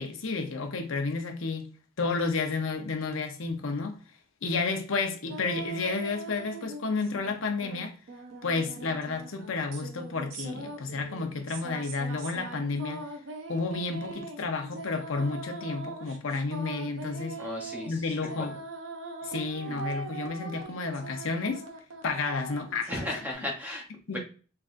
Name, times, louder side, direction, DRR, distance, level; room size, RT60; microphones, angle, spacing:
voice 1, 0.0-1.7 2.0-4.0 4.4-7.9 8.4-13.0 13.5-17.4 17.9-18.6 19.2-21.6 22.0-22.9 24.1-24.2, left 4 dB, 90° left, 0.8 m, -31 dB
sound 1, 5.3-7.4 7.6-23.3, right 3 dB, 75° right, 0.7 m, -41 dB
voice 2, 17.4-18.0 18.4-18.5 19.7-19.8 22.9-23.9 24.1-24.2, left 1 dB, 10° right, 0.8 m, -35 dB
3.7 x 3.3 x 2.6 m
head